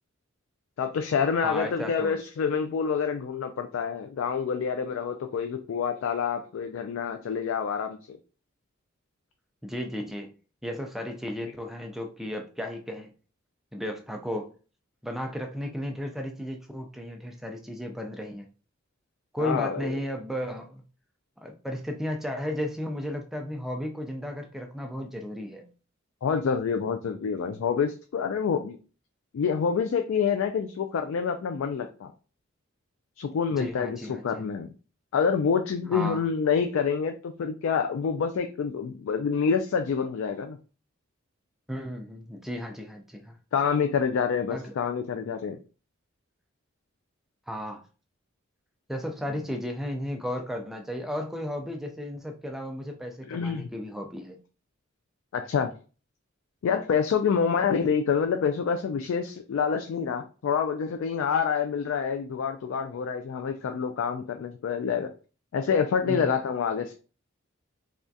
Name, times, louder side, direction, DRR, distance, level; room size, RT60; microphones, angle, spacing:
voice 1, 0.8-8.2 11.4-11.5 19.4-20.0 26.2-28.8 29.3-32.1 33.2-34.7 35.1-40.6 43.5-45.6 53.3-53.7 55.3-55.7 56.6-65.1 65.5-66.9, left 6 dB, 75° left, 6 dB, 0.3 m, -27 dB
voice 2, 1.4-2.2 9.6-10.3 10.6-13.1 13.7-14.5 15.0-18.5 19.3-20.8 21.4-25.7 33.6-34.4 35.9-36.2 41.7-43.4 44.5-44.7 47.5-47.8 48.9-54.4 66.0-66.3, equal, ahead, 3 dB, 0.4 m, -34 dB
3.4 x 2.3 x 2.6 m, 0.35 s
head